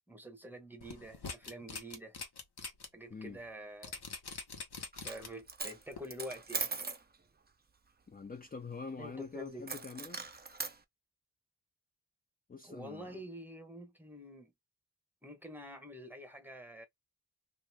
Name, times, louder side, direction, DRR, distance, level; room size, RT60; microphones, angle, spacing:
voice 1, 0.1-2.2 2.9-4.0 5.0-6.7 9.0-9.7 12.6-14.5 15.2-16.9, equal, 5° right, 0.9 m, -47 dB
sound 1, 0.8-2.9 3.3-3.4 3.8-5.5 5.9-6.0, left 4 dB, 85° left, 1.0 m, -43 dB
Coin (dropping), 4.9-5.2 5.5-7.0 9.7-10.8, right 4 dB, 25° right, 0.5 m, -39 dB
voice 2, 8.1-10.3 12.5-13.3, left 4 dB, 25° left, 0.4 m, -45 dB
2.8 x 2.5 x 3.3 m
wide cardioid pair, 90°, 38 cm